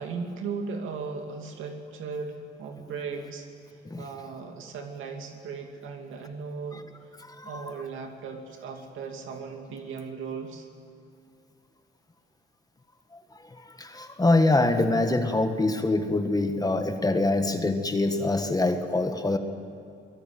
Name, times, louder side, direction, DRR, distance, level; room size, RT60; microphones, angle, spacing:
voice 1, 0.0-7.1 7.4-10.7, right 5 dB, 80° right, 3 dB, 2.6 m, -37 dB
voice 2, 7.3-7.6 13.6-19.4, left 2 dB, 20° left, 7 dB, 1.7 m, -24 dB
23.5 x 18.5 x 9.2 m, 2.3 s
cardioid pair, 90°, 20 cm